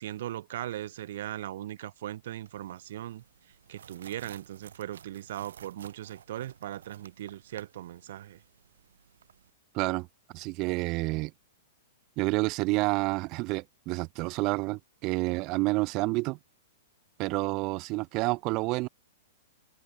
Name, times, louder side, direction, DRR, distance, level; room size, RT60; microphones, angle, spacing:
voice 1, 0.0-3.2 3.7-8.4, right 13 dB, 65° right, 1.7 m, -38 dB
sound 1, 2.5-9.5, right 8 dB, 80° right, 7.6 m, -54 dB
voice 2, 9.7-10.1 10.3-11.3 12.2-16.4 17.2-18.9, right 24 dB, 35° right, 0.9 m, -29 dB
hypercardioid pair, 140°, 0 cm